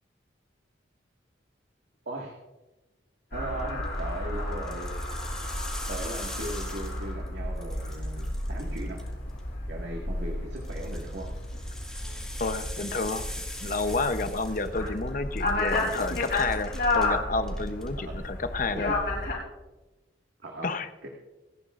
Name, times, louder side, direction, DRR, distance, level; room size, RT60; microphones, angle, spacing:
voice 1, 2.1-2.4 3.3-5.0 5.9-9.1 9.7-11.3 18.1-18.2 18.7-19.0 20.4-21.1, right 1 dB, 80° right, -1 dB, 1.9 m, -38 dB
sound 1, 3.3-19.3, left 2 dB, 65° left, 5.8 m, -32 dB
sound 2, 3.7-4.0 4.5-7.3 7.6-9.4 10.6-15.1 15.4-17.1 17.4-17.9, left 1 dB, 5° left, 2.1 m, -43 dB
voice 2, 12.4-18.9 20.6-20.9, left 3 dB, 45° left, 10 dB, 0.8 m, -30 dB
27.5 x 10.5 x 2.5 m, 1.1 s
head